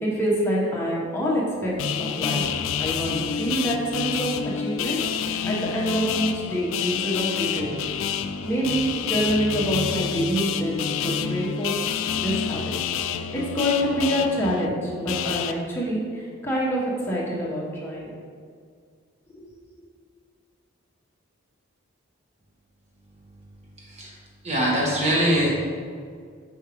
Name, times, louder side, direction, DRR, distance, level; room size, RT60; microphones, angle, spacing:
voice 1, 0.0-1.7 2.0-2.4 2.8-7.7 8.4-11.7 12.1-12.7 13.3-18.1 19.3-19.4, equal, 10° left, -6 dB, 1.1 m, -26 dB
sound 1, 1.8-15.5, left 8 dB, 80° left, 0.3 m, -28 dB
voice 2, 23.1-23.5 23.8-24.2 24.4-25.5, equal, 30° right, -5 dB, 1.3 m, -24 dB
5.9 x 5.5 x 3.1 m, 2.1 s
head